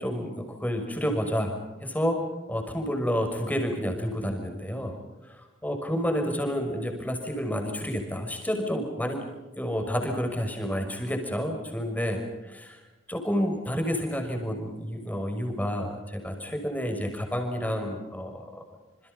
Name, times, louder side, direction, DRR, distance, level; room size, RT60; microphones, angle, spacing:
voice 1, 0.0-2.2 2.5-5.0 5.2-9.2 9.6-12.8 13.1-18.6, equal, 10° left, 4 dB, 6.0 m, -30 dB
29.0 x 28.5 x 5.5 m, 1.1 s
head